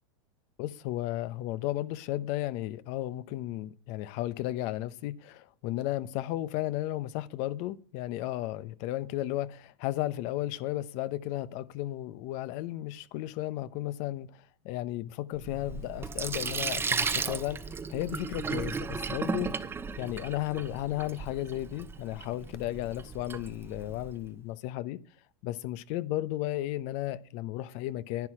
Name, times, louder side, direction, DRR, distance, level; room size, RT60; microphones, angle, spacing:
voice 1, 0.6-17.6 17.9-19.5 20.0-25.0 25.4-28.3, left 15 dB, 55° left, 0.9 m, -34 dB
Sink (filling or washing), 15.4-24.2, right 5 dB, 15° right, 0.8 m, -35 dB
10.5 x 9.9 x 4.8 m
supercardioid pair, 120°, 14 cm